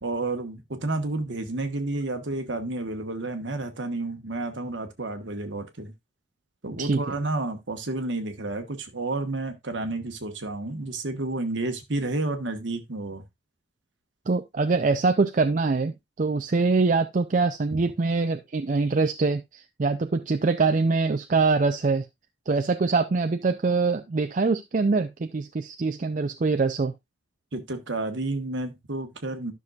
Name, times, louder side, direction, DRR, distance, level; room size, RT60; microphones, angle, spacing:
voice 1, 0.0-5.9 6.6-13.2 17.7-17.8 27.5-29.5, right 2 dB, 65° right, 1.3 m, -31 dB
voice 2, 14.3-22.1 22.5-26.9, right 4 dB, 40° right, 0.4 m, -24 dB
12.0 x 6.1 x 2.4 m
head